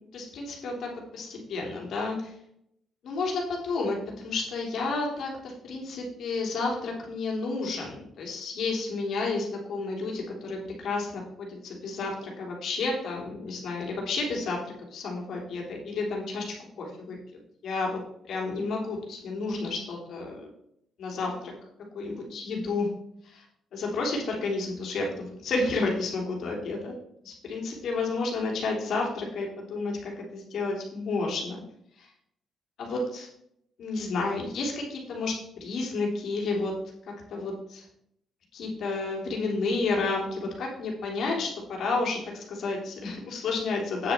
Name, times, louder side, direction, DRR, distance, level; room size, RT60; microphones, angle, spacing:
voice 1, 0.1-2.3 3.0-14.6 14.9-17.2 17.6-18.0 18.3-20.5 21.0-21.5 21.9-22.9 23.2-23.4 23.7-26.9 27.2-31.6 32.0-32.1 32.8-33.3 33.8-35.3 35.6-36.7 37.3-37.8 38.5-41.5 41.8-44.1, left 3 dB, 65° left, -1 dB, 3.3 m, -31 dB
9.1 x 7.7 x 4.4 m, 0.73 s
cardioid pair, 90°, 0 cm